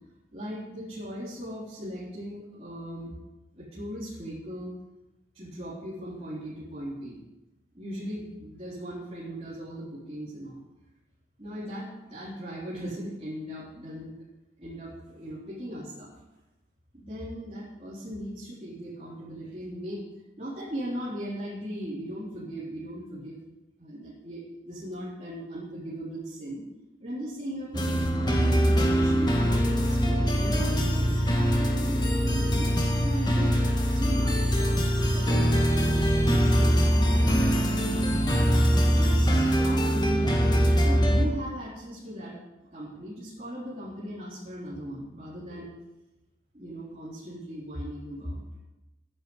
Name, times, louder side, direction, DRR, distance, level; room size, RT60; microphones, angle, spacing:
voice 1, 0.3-3.2 3.5-4.7 5.3-7.2 7.7-10.6 11.4-14.1 14.6-16.1 16.9-20.0 20.4-23.4 23.8-26.6 27.0-33.5 33.9-38.5 38.9-42.4 42.7-45.7 46.5-48.4, equal, 35° right, -9 dB, 3.8 m, -38 dB
sound 1, 27.7-41.2, equal, 25° left, 2.0 m, -23 dB
13.0 x 10.5 x 8.1 m, 1.0 s
head